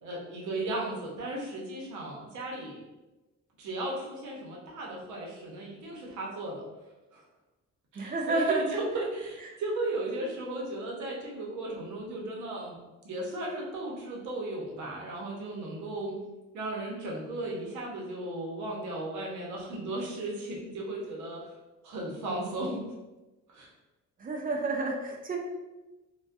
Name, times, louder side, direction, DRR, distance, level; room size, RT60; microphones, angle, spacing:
voice 1, 0.0-2.9 3.6-6.7 7.1-7.2 7.9-12.8 13.0-16.2 16.5-21.5 21.8-22.8 23.5-23.7, right 1 dB, 75° right, -2 dB, 0.7 m, -35 dB
voice 2, 7.9-8.6 9.4-9.5 24.2-25.4, right 3 dB, 30° right, 1 dB, 0.4 m, -30 dB
2.2 x 2.2 x 2.5 m, 1.1 s
cardioid pair, 90°, 30 cm